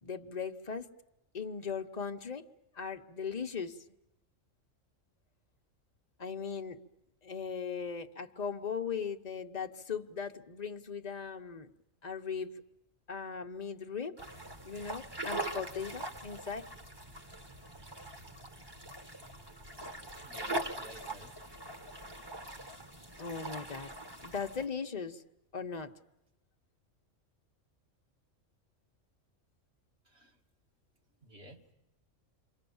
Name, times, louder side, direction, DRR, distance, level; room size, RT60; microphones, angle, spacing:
voice 1, 0.0-0.9 1.3-2.5 2.7-3.8 6.2-6.8 7.2-11.7 12.0-12.5 13.1-14.2 14.6-16.7 23.2-23.9 24.2-25.2 25.5-26.0, left 6 dB, 35° left, 5 dB, 1.1 m, -38 dB
sound 1, 14.2-24.6, right 1 dB, 20° right, 1.4 m, -42 dB
voice 2, 20.2-21.3 30.1-30.4 31.2-31.7, right 1 dB, 55° right, 2 dB, 2.5 m, -53 dB
28.0 x 24.0 x 7.1 m, 0.88 s
omnidirectional pair, 1.3 m